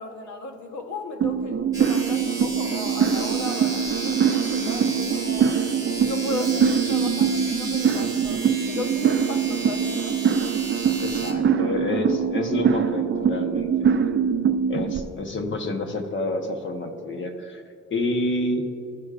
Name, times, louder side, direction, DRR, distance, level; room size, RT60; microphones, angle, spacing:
voice 1, 0.0-5.6 6.0-10.2, left 2 dB, 70° left, 5 dB, 1.1 m, -35 dB
sound 1, 1.2-15.0, right 7 dB, 40° right, 0.5 m, -23 dB
sound 2, 1.7-11.3, right 3 dB, 10° right, 1.7 m, -34 dB
voice 2, 11.0-13.9 14.7-17.6 17.9-18.7, left 2 dB, 40° left, 4 dB, 1.1 m, -28 dB
14.0 x 6.1 x 2.5 m, 2.6 s
cardioid pair, 90°, 30 cm